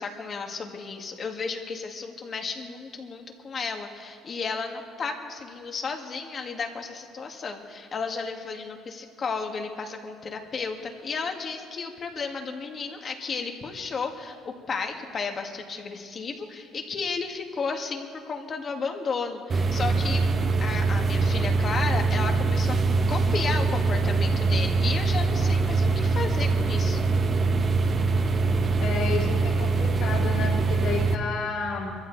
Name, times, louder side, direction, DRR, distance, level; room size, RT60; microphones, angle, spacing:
voice 1, 0.0-20.4 20.6-22.8 23.1-27.0, left 5 dB, 45° left, 3 dB, 2.0 m, -33 dB
sound 1, 19.5-31.1, right 3 dB, 40° right, 1.1 m, -23 dB
voice 2, 28.8-32.0, left 4 dB, 65° left, -8 dB, 4.7 m, -31 dB
22.5 x 14.0 x 4.1 m, 2.2 s
supercardioid pair, 85°, 0 cm